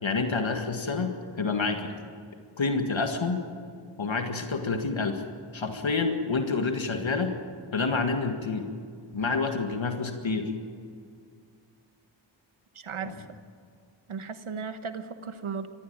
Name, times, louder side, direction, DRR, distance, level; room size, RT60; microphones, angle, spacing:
voice 1, 0.0-1.9 2.6-3.4 4.0-5.2 5.5-7.4 7.7-8.7 9.1-10.5 13.0-13.1, left 4 dB, 75° left, 5 dB, 1.9 m, -28 dB
voice 2, 12.7-13.4 14.1-15.7, right 5 dB, 90° right, 10 dB, 1.3 m, -36 dB
20.0 x 15.0 x 8.9 m, 2.2 s
cardioid pair, 40°, 48 cm